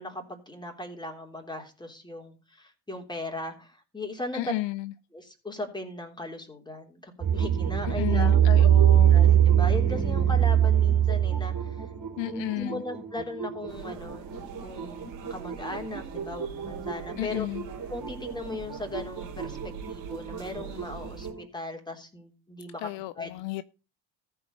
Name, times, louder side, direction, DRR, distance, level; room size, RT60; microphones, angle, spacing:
voice 1, 0.0-4.5 5.1-8.7 9.1-11.8 12.3-17.5 17.9-22.9 23.2-23.4, left 2 dB, 10° left, 3.6 m, -38 dB
voice 2, 4.3-4.9 7.8-9.2 12.2-12.8 17.2-17.7 22.8-23.6, left 18 dB, 65° left, 0.6 m, -33 dB
sound 1, 7.2-21.4, right 10 dB, 40° right, 3.1 m, -25 dB
sound 2, 13.7-21.3, right 7 dB, 80° right, 2.3 m, -44 dB
14.5 x 4.8 x 6.6 m
hypercardioid pair, 70°, 48 cm